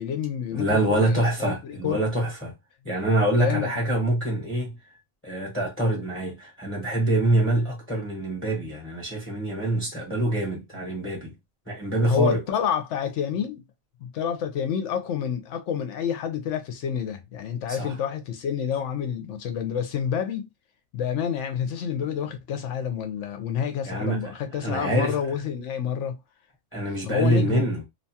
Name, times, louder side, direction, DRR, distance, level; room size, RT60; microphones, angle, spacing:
voice 1, 0.0-2.0 3.4-3.7 12.1-13.6 14.0-20.5 20.9-26.2 27.0-27.6, left 8 dB, 70° left, 0.8 m, -28 dB
voice 2, 0.5-2.5 2.8-4.8 5.2-11.3 11.7-12.4 17.7-17.9 23.8-24.3 24.6-25.1 26.7-27.8, right 1 dB, 10° left, 0.8 m, -25 dB
2.8 x 2.3 x 2.6 m
omnidirectional pair, 1.4 m